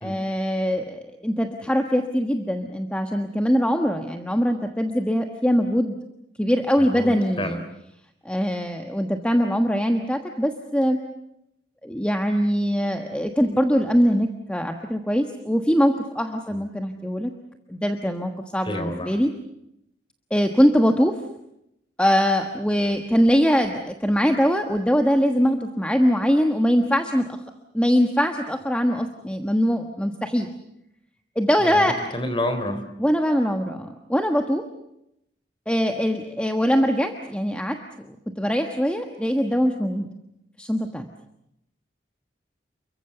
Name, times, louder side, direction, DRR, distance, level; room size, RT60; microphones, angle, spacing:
voice 1, 0.0-6.0 6.4-7.6 8.2-11.0 11.8-17.3 17.7-19.3 20.3-21.1 22.0-27.3 27.7-30.5 31.3-32.0 33.0-34.6 35.7-37.8 38.1-40.1 40.6-41.1, equal, 5° left, 5 dB, 1.3 m, -22 dB
voice 2, 6.8-7.6 16.5-16.6 18.7-19.2 31.6-32.8, left 1 dB, 25° left, 8 dB, 3.6 m, -29 dB
30.0 x 23.0 x 6.8 m, 0.82 s
head